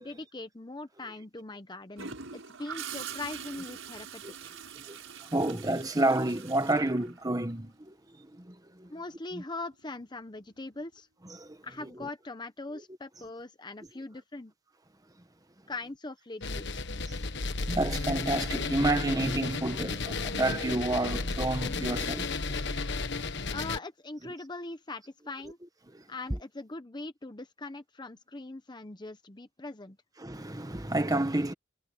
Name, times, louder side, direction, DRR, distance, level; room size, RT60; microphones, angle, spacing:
voice 1, 0.0-4.6 8.9-11.1 11.6-14.5 15.7-16.8 23.5-25.6 26.1-30.0, left 2 dB, 20° left, 0.8 m, -41 dB
Gurgling / Toilet flush, 2.0-7.7 9.7-10.0, right 7 dB, 70° right, 6.3 m, -43 dB
voice 2, 5.3-7.9 8.5-8.6 8.8-8.9 9.3-9.4 11.2-11.5 11.8-12.1 17.7-22.6 25.4-25.5 30.2-31.5, right 2 dB, 20° right, 1.4 m, -30 dB
sound 1, 16.4-23.8, left 3 dB, 60° left, 1.3 m, -33 dB
head